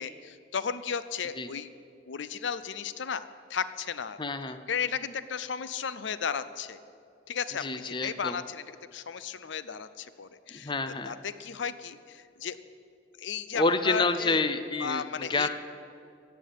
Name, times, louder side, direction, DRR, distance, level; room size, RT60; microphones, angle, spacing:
voice 1, 0.0-1.7 2.1-4.2 4.7-6.8 7.3-8.6 8.9-10.7 11.0-12.6 13.2-14.4 14.8-15.5, left 7 dB, 70° left, 14 dB, 0.5 m, -34 dB
voice 2, 4.2-4.6 7.6-8.4 10.6-11.1 13.5-15.5, left 3 dB, 25° left, 10 dB, 0.6 m, -28 dB
15.5 x 8.4 x 9.3 m, 2.4 s
head